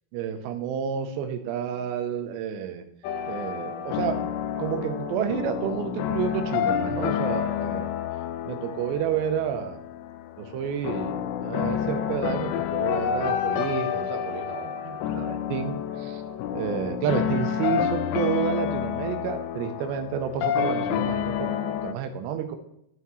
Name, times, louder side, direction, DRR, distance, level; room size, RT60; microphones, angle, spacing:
voice 1, 0.1-2.8 3.3-4.2 4.6-7.9 8.5-9.8 10.4-16.2 16.5-22.6, right 8 dB, 85° right, 7 dB, 2.9 m, -30 dB
sound 1, 3.0-21.9, left 9 dB, 90° left, 2.8 m, -29 dB
12.5 x 5.8 x 3.1 m, 0.78 s
omnidirectional pair, 5.0 m